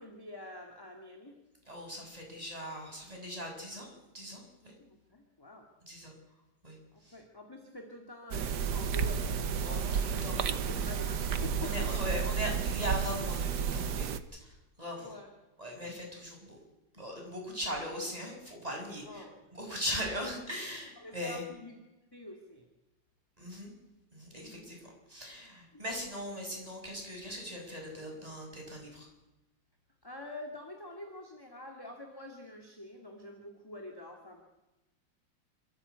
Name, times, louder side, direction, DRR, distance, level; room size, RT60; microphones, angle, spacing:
voice 1, 0.0-1.4 4.8-5.7 6.9-11.9 15.0-15.3 19.0-19.4 21.0-21.8 22.1-22.7 24.3-24.7 25.7-25.8 30.0-34.4, left 1 dB, 10° left, 2 dB, 2.3 m, -47 dB
voice 2, 1.7-4.7 5.9-6.1 6.6-7.1 9.6-10.6 11.6-14.1 14.4-15.1 15.6-16.6 16.9-19.2 19.5-21.4 23.4-23.7 24.1-29.1, equal, 15° right, 1 dB, 6.5 m, -39 dB
sound 1, 8.3-14.2, right 7 dB, 55° right, 1.4 m, -32 dB
27.5 x 14.5 x 8.4 m, 1.0 s
omnidirectional pair, 2.4 m